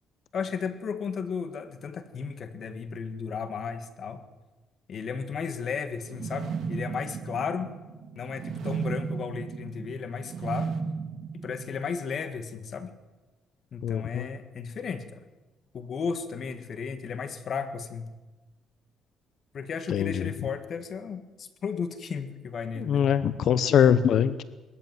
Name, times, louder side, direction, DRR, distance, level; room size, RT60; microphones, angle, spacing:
voice 1, 0.3-4.2 4.9-7.7 8.2-10.7 11.3-12.9 13.7-15.2 15.7-18.1 19.5-23.1, left 6 dB, 45° left, 10 dB, 1.8 m, -34 dB
sound 1, 6.1-12.1, right 5 dB, 60° right, 1.9 m, -35 dB
voice 2, 13.8-14.3 19.9-20.3 22.8-24.4, left 8 dB, 60° left, 14 dB, 0.8 m, -23 dB
21.0 x 14.0 x 9.3 m, 1.2 s
cardioid pair, 125°, 0 cm